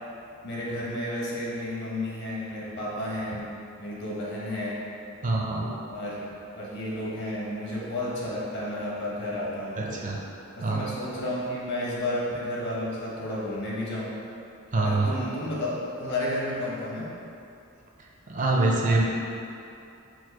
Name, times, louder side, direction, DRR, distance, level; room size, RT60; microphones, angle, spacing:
voice 1, 0.4-3.5 3.8-4.8 5.8-10.0 10.6-14.1 14.7-17.1, left 1 dB, 55° left, -6 dB, 1.0 m, -32 dB
voice 2, 5.2-5.7 9.8-10.2 10.6-10.9 14.7-15.1 18.3-19.0, right 2 dB, 35° right, -2 dB, 0.5 m, -24 dB
4.6 x 2.3 x 4.3 m, 2.7 s
head